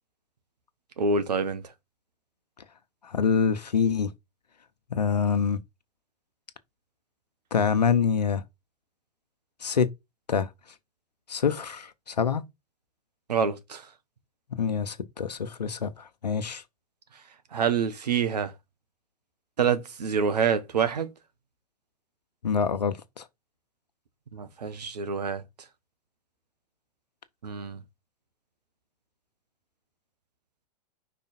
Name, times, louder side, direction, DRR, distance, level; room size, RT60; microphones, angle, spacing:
voice 1, 1.0-1.6 13.3-13.9 17.5-18.5 19.6-21.1 24.3-25.4 27.4-27.8, right 6 dB, 80° right, 1.3 m, -26 dB
voice 2, 3.0-4.1 4.9-5.6 7.5-8.4 9.6-9.9 10.3-10.5 11.3-12.4 14.5-16.6 22.4-23.2, left 6 dB, 90° left, 1.0 m, -26 dB
5.5 x 4.2 x 4.2 m
hypercardioid pair, 105°, 20 cm